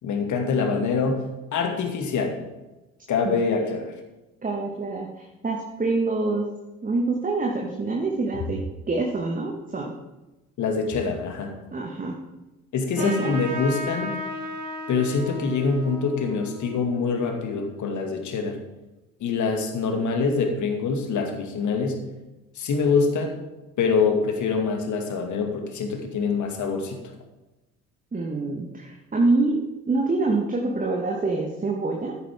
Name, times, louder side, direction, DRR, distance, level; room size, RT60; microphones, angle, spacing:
voice 1, 0.0-2.4 3.1-3.9 10.6-11.5 12.7-14.2 14.9-18.6 19.2-21.9 22.6-23.3 23.8-27.0, left 4 dB, 45° left, 4 dB, 2.4 m, -25 dB
voice 2, 4.4-6.5 6.8-8.6 8.9-9.9 11.7-12.2 13.0-13.4 28.1-29.6 29.9-32.1, right 3 dB, 20° right, 0 dB, 1.7 m, -26 dB
Trumpet, 13.0-18.0, left 1 dB, 65° right, 2.4 m, -35 dB
13.5 x 9.7 x 3.8 m, 1.0 s
figure-of-eight pair, 60°, 41 cm